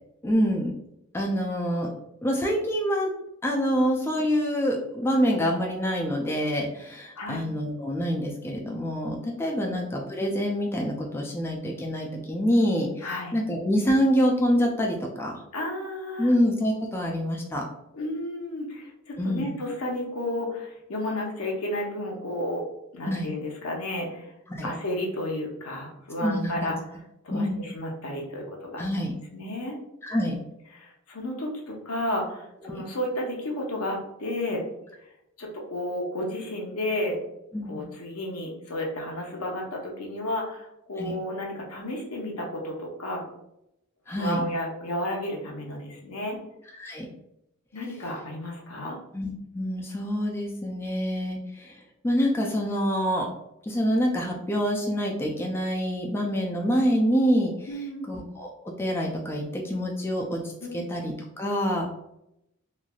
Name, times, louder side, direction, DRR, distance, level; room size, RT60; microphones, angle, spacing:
voice 1, 0.2-0.7 1.1-1.9 2.2-3.1 3.4-15.4 16.2-17.6 19.2-19.5 23.1-23.3 24.5-24.7 26.2-26.7 27.3-27.6 28.8-29.1 30.0-30.4 37.5-37.8 41.0-41.1 44.1-44.4 46.8-47.1 49.1-53.3 53.6-57.7 58.1-58.5 58.8-60.4 60.7-61.9, equal, 10° left, -1 dB, 0.3 m, -26 dB
voice 2, 7.2-7.5 9.5-9.8 13.0-13.4 15.5-16.3 17.9-22.6 22.9-24.3 24.6-26.8 27.2-29.8 30.7-34.6 35.4-37.2 37.6-43.2 44.1-46.4 47.7-49.0 57.7-58.1 60.6-60.8, left 1 dB, 80° left, 0 dB, 0.7 m, -32 dB
3.1 x 2.5 x 2.3 m, 0.83 s
head